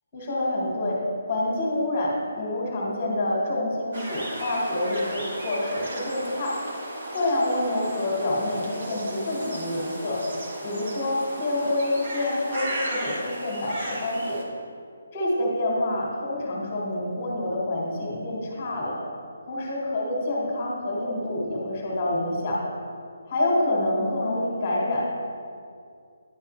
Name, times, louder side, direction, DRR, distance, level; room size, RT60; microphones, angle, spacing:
voice 1, 0.1-1.0 1.2-6.6 7.1-10.2 10.6-14.4 15.1-19.0 19.5-22.6 23.3-25.1, left 1 dB, 20° left, -5 dB, 1.4 m, -27 dB
sound 1, 3.9-14.4, right 1 dB, 50° right, 1.1 m, -35 dB
10.0 x 5.5 x 3.1 m, 2.3 s
hypercardioid pair, 170°, 0 cm